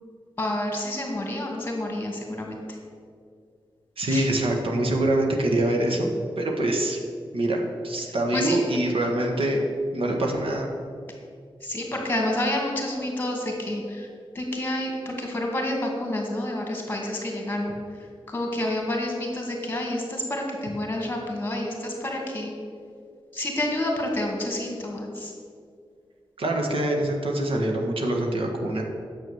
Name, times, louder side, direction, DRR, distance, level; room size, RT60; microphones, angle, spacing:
voice 1, 0.4-2.8 4.1-4.3 8.3-8.6 11.6-14.1 14.3-17.8 18.3-22.5 23.3-25.3, left 1 dB, 20° left, 0 dB, 2.2 m, -29 dB
voice 2, 4.0-6.1 6.4-7.0 7.3-9.7 9.9-10.7 26.4-28.8, right 1 dB, 70° right, 1 dB, 1.5 m, -24 dB
9.6 x 7.3 x 7.0 m, 2.2 s
wide cardioid pair, 155°, 9 cm